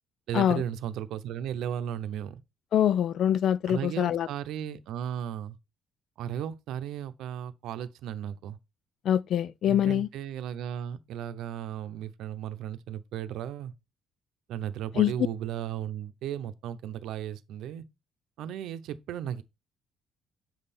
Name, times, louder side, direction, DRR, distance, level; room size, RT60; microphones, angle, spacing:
voice 1, 0.3-2.4 3.7-5.6 6.2-8.6 9.6-13.7 14.5-17.8 18.4-19.4, right 10 dB, 70° right, 0.8 m, -35 dB
voice 2, 2.7-4.3 9.0-10.1 15.0-15.1, left 10 dB, 50° left, 0.3 m, -24 dB
7.5 x 5.6 x 4.2 m
cardioid pair, 160°, 0 cm